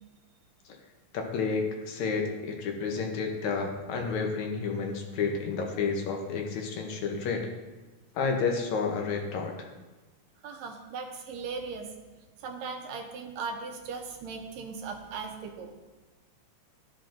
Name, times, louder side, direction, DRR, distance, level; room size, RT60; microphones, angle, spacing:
voice 1, 1.1-7.5 8.1-9.7, left 5 dB, 75° left, 2 dB, 2.1 m, -30 dB
voice 2, 10.4-11.9 12.4-15.7, right 5 dB, 80° right, 3 dB, 1.8 m, -38 dB
12.5 x 5.9 x 2.5 m, 1.2 s
omnidirectional pair, 3.4 m